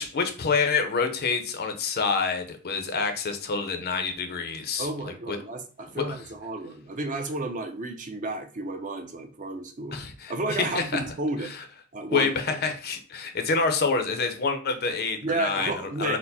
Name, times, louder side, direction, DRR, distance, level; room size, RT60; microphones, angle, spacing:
voice 1, 0.0-5.4 6.0-6.1 9.9-10.3 10.6-11.0 12.1-15.7 16.0-16.2, left 4 dB, 45° left, 7 dB, 0.7 m, -27 dB
voice 2, 4.8-10.0 10.3-11.5 11.9-12.6 15.2-16.2, right 2 dB, 35° right, 6 dB, 0.6 m, -32 dB
4.4 x 2.1 x 4.0 m, 0.38 s
head